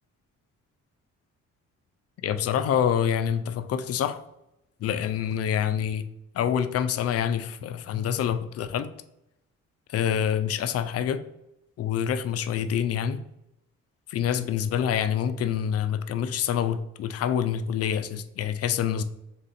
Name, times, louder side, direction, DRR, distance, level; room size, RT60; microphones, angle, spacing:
voice 1, 2.2-4.2 4.8-6.0 6.3-8.9 9.9-11.2 11.8-13.2 14.1-19.0, left 9 dB, 55° left, 11 dB, 0.4 m, -26 dB
3.7 x 2.6 x 4.0 m, 0.84 s
cardioid pair, 90°, 30 cm